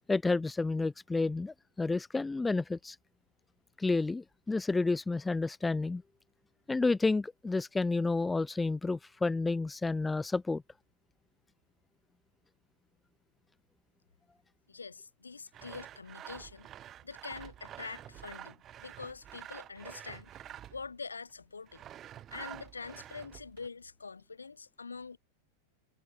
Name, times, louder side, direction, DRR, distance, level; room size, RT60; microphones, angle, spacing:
voice 1, 0.1-3.0 3.8-6.0 6.7-10.6, left 3 dB, 10° left, 0.4 m, -30 dB
voice 2, 14.7-16.7 17.0-20.4 20.7-21.8 22.3-25.2, left 4 dB, 75° left, 2.8 m, -45 dB
Sawing, 15.5-20.9 21.7-23.7, right 11 dB, 30° right, 4.1 m, -48 dB
figure-of-eight pair, 90°, 0 cm